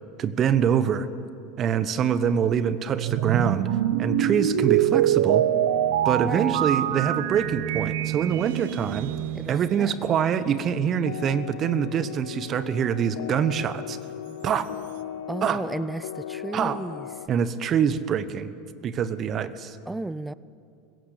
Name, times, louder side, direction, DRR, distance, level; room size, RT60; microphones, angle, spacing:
voice 1, 0.2-1.1 1.6-3.7 4.0-5.4 6.0-9.1 9.5-14.0 14.4-14.7 15.4-15.6 16.5-16.8 17.3-18.5 18.8-19.8, right 8 dB, 40° right, 14 dB, 1.1 m, -25 dB
sound 1, 2.9-10.2, right 12 dB, 75° right, 0.8 m, -25 dB
voice 2, 6.2-6.6 9.3-10.0 15.3-17.1 19.9-20.3, right 2 dB, 10° right, 19 dB, 0.6 m, -33 dB
sound 2, 10.4-17.3, left 11 dB, 75° left, 0.7 m, -38 dB
20.5 x 16.0 x 8.4 m, 2.6 s
hypercardioid pair, 95°, 0 cm